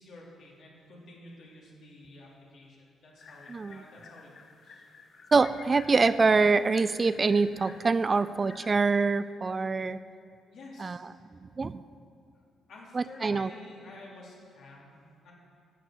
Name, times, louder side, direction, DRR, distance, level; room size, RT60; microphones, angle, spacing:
voice 1, 0.0-4.3 4.6-4.8 10.5-11.0 12.3-15.3, left 2 dB, 70° left, -4 dB, 3.1 m, -50 dB
sound 1, 3.2-9.0, left 5 dB, 50° left, 0.8 m, -52 dB
voice 2, 5.3-10.0 10.8-11.0 11.6-11.8 12.9-13.5, right 4 dB, 30° right, 14 dB, 0.3 m, -25 dB
10.0 x 7.8 x 7.7 m, 2.5 s
cardioid pair, 90°, 0 cm